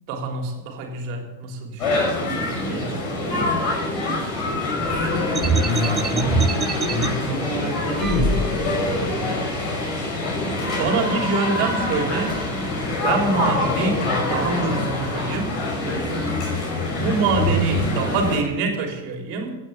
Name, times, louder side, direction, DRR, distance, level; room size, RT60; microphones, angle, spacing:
voice 1, 0.1-2.1 2.7-3.4 10.8-12.4 13.0-15.6 17.0-19.5, right 4 dB, 45° right, 3 dB, 3.3 m, -25 dB
sound 1, 1.8-18.4, left 2 dB, 35° left, 5.4 m, -25 dB
voice 2, 5.3-9.0, left 2 dB, 15° left, 0 dB, 6.2 m, -27 dB
sound 2, 5.3-7.1 8.0-8.9, right 3 dB, 20° right, 0.8 m, -24 dB
16.5 x 8.6 x 7.2 m, 1.1 s
figure-of-eight pair, 90°, 0 cm